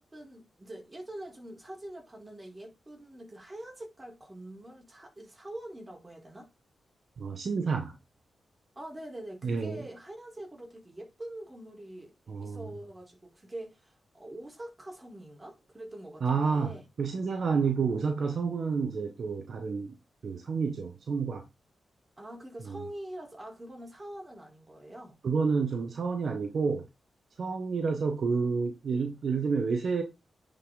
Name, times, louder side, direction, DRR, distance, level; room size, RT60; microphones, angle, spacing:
voice 1, 0.0-6.5 8.8-16.8 22.2-25.2, right 1 dB, 25° right, 4.3 m, -44 dB
voice 2, 7.2-8.0 9.4-9.8 12.3-12.7 16.2-19.9 20.2-21.4 22.6-22.8 25.2-26.8 27.4-30.0, right 5 dB, 65° right, 1.3 m, -29 dB
9.6 x 5.4 x 4.0 m
cardioid pair, 60°, 0 cm